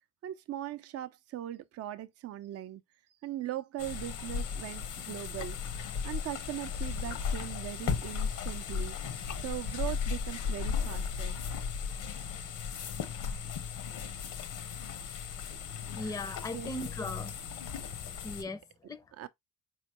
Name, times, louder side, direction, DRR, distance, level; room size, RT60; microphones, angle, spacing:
voice 1, 0.2-2.8 3.2-5.6 6.0-9.2 9.4-11.4 16.0-16.2 16.5-16.7 19.2-19.3, right 13 dB, 55° right, 0.5 m, -40 dB
sound 1, 3.8-18.4, left 6 dB, 80° left, 0.9 m, -36 dB
voice 2, 15.9-17.4 18.2-19.0, left 2 dB, 10° left, 0.5 m, -38 dB
4.4 x 3.1 x 2.9 m
cardioid pair, 90°, 30 cm